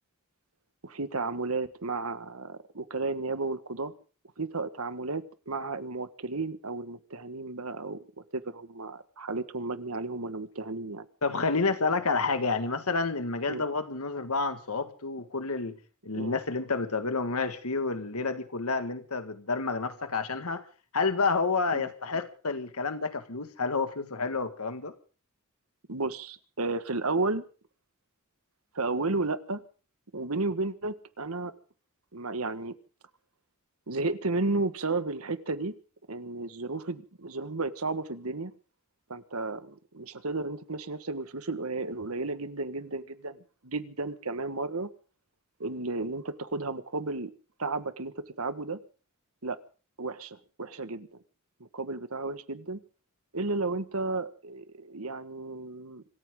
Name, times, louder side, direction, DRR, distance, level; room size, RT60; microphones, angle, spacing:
voice 1, 0.8-3.9 4.4-8.0 8.3-11.0 13.5-13.6 16.1-16.3 21.7-21.9 25.9-27.5 28.7-29.6 30.1-31.5 32.1-32.7 33.9-35.7 36.1-38.5 39.1-44.9 45.6-47.3 47.6-48.8 49.4-49.6 50.0-51.1 51.7-52.8 53.3-56.0, right 3 dB, 75° right, 11 dB, 1.6 m, -33 dB
voice 2, 11.2-15.8 16.1-20.6 20.9-24.9, left 4 dB, 85° left, 9 dB, 1.8 m, -29 dB
26.0 x 14.5 x 3.8 m, 0.38 s
head